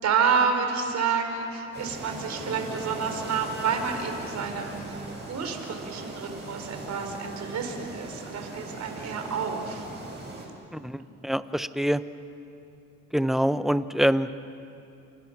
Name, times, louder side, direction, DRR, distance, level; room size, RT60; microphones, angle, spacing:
voice 1, 0.0-5.0 5.3-9.9 10.7-10.8, right 6 dB, 65° right, 4 dB, 4.4 m, -29 dB
sound 1, 1.7-10.5, right 2 dB, 35° right, 7.2 m, -39 dB
voice 2, 10.7-12.0 13.1-14.5, equal, ahead, 12 dB, 0.9 m, -25 dB
30.0 x 28.5 x 6.1 m, 2.7 s
cardioid pair, 90°, 30 cm